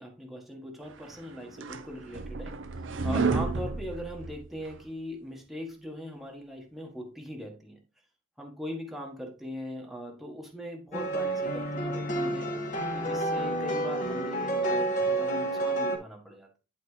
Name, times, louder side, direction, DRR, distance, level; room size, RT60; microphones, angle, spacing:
voice 1, 0.0-7.8 8.4-12.5 12.9-16.6, equal, ahead, 0 dB, 1.4 m, -40 dB
sound 1, 1.1-4.8, right 4 dB, 80° right, 0.7 m, -31 dB
sound 2, 10.9-16.0, right 2 dB, 40° left, 1.7 m, -29 dB
10.5 x 4.2 x 3.2 m, 0.32 s
head